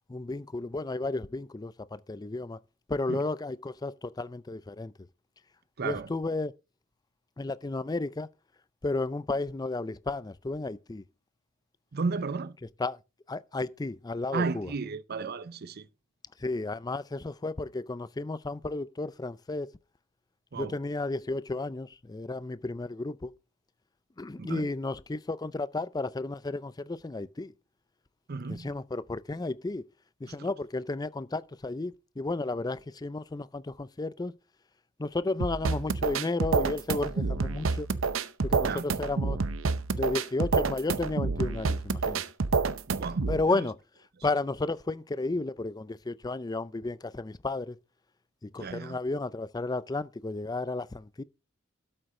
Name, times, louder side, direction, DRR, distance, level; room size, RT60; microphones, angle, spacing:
voice 1, 0.1-2.6 2.9-4.9 5.8-6.5 7.4-8.3 8.8-11.0 12.8-13.0 13.3-14.7 16.4-19.7 20.6-23.3 24.2-27.5 28.5-29.8 30.2-34.3 35.0-37.9 38.4-39.4 39.9-42.2 43.3-43.8 44.2-47.8 48.4-51.2, left 2 dB, 20° left, 0.4 m, -33 dB
voice 2, 5.8-6.1 11.9-12.6 14.3-15.9 20.5-20.8 24.4-24.7 28.3-28.7 30.3-30.5 38.6-38.9 42.9-43.7 48.6-49.0, right 4 dB, 50° right, 0.6 m, -34 dB
sound 1, 35.4-43.4, right 4 dB, 90° right, 0.7 m, -28 dB
12.5 x 7.8 x 3.7 m
head